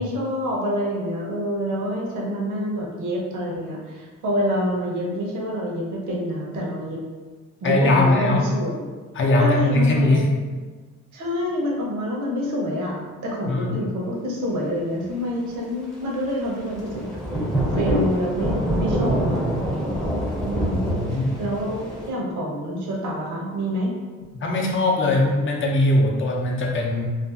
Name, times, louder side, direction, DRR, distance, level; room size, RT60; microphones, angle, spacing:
voice 1, 0.0-7.0 7.6-8.9 9.4-10.2 11.1-17.0 17.7-23.9, equal, 75° right, -3 dB, 0.8 m, -27 dB
voice 2, 7.6-8.5 9.1-10.3 13.5-13.7 20.7-21.4 24.4-27.1, left 2 dB, 40° left, -1 dB, 0.6 m, -20 dB
Thunder / Rain, 16.6-22.1, equal, ahead, 0.6 m, -25 dB
2.5 x 2.4 x 2.4 m, 1.4 s
cardioid pair, 90°, 30 cm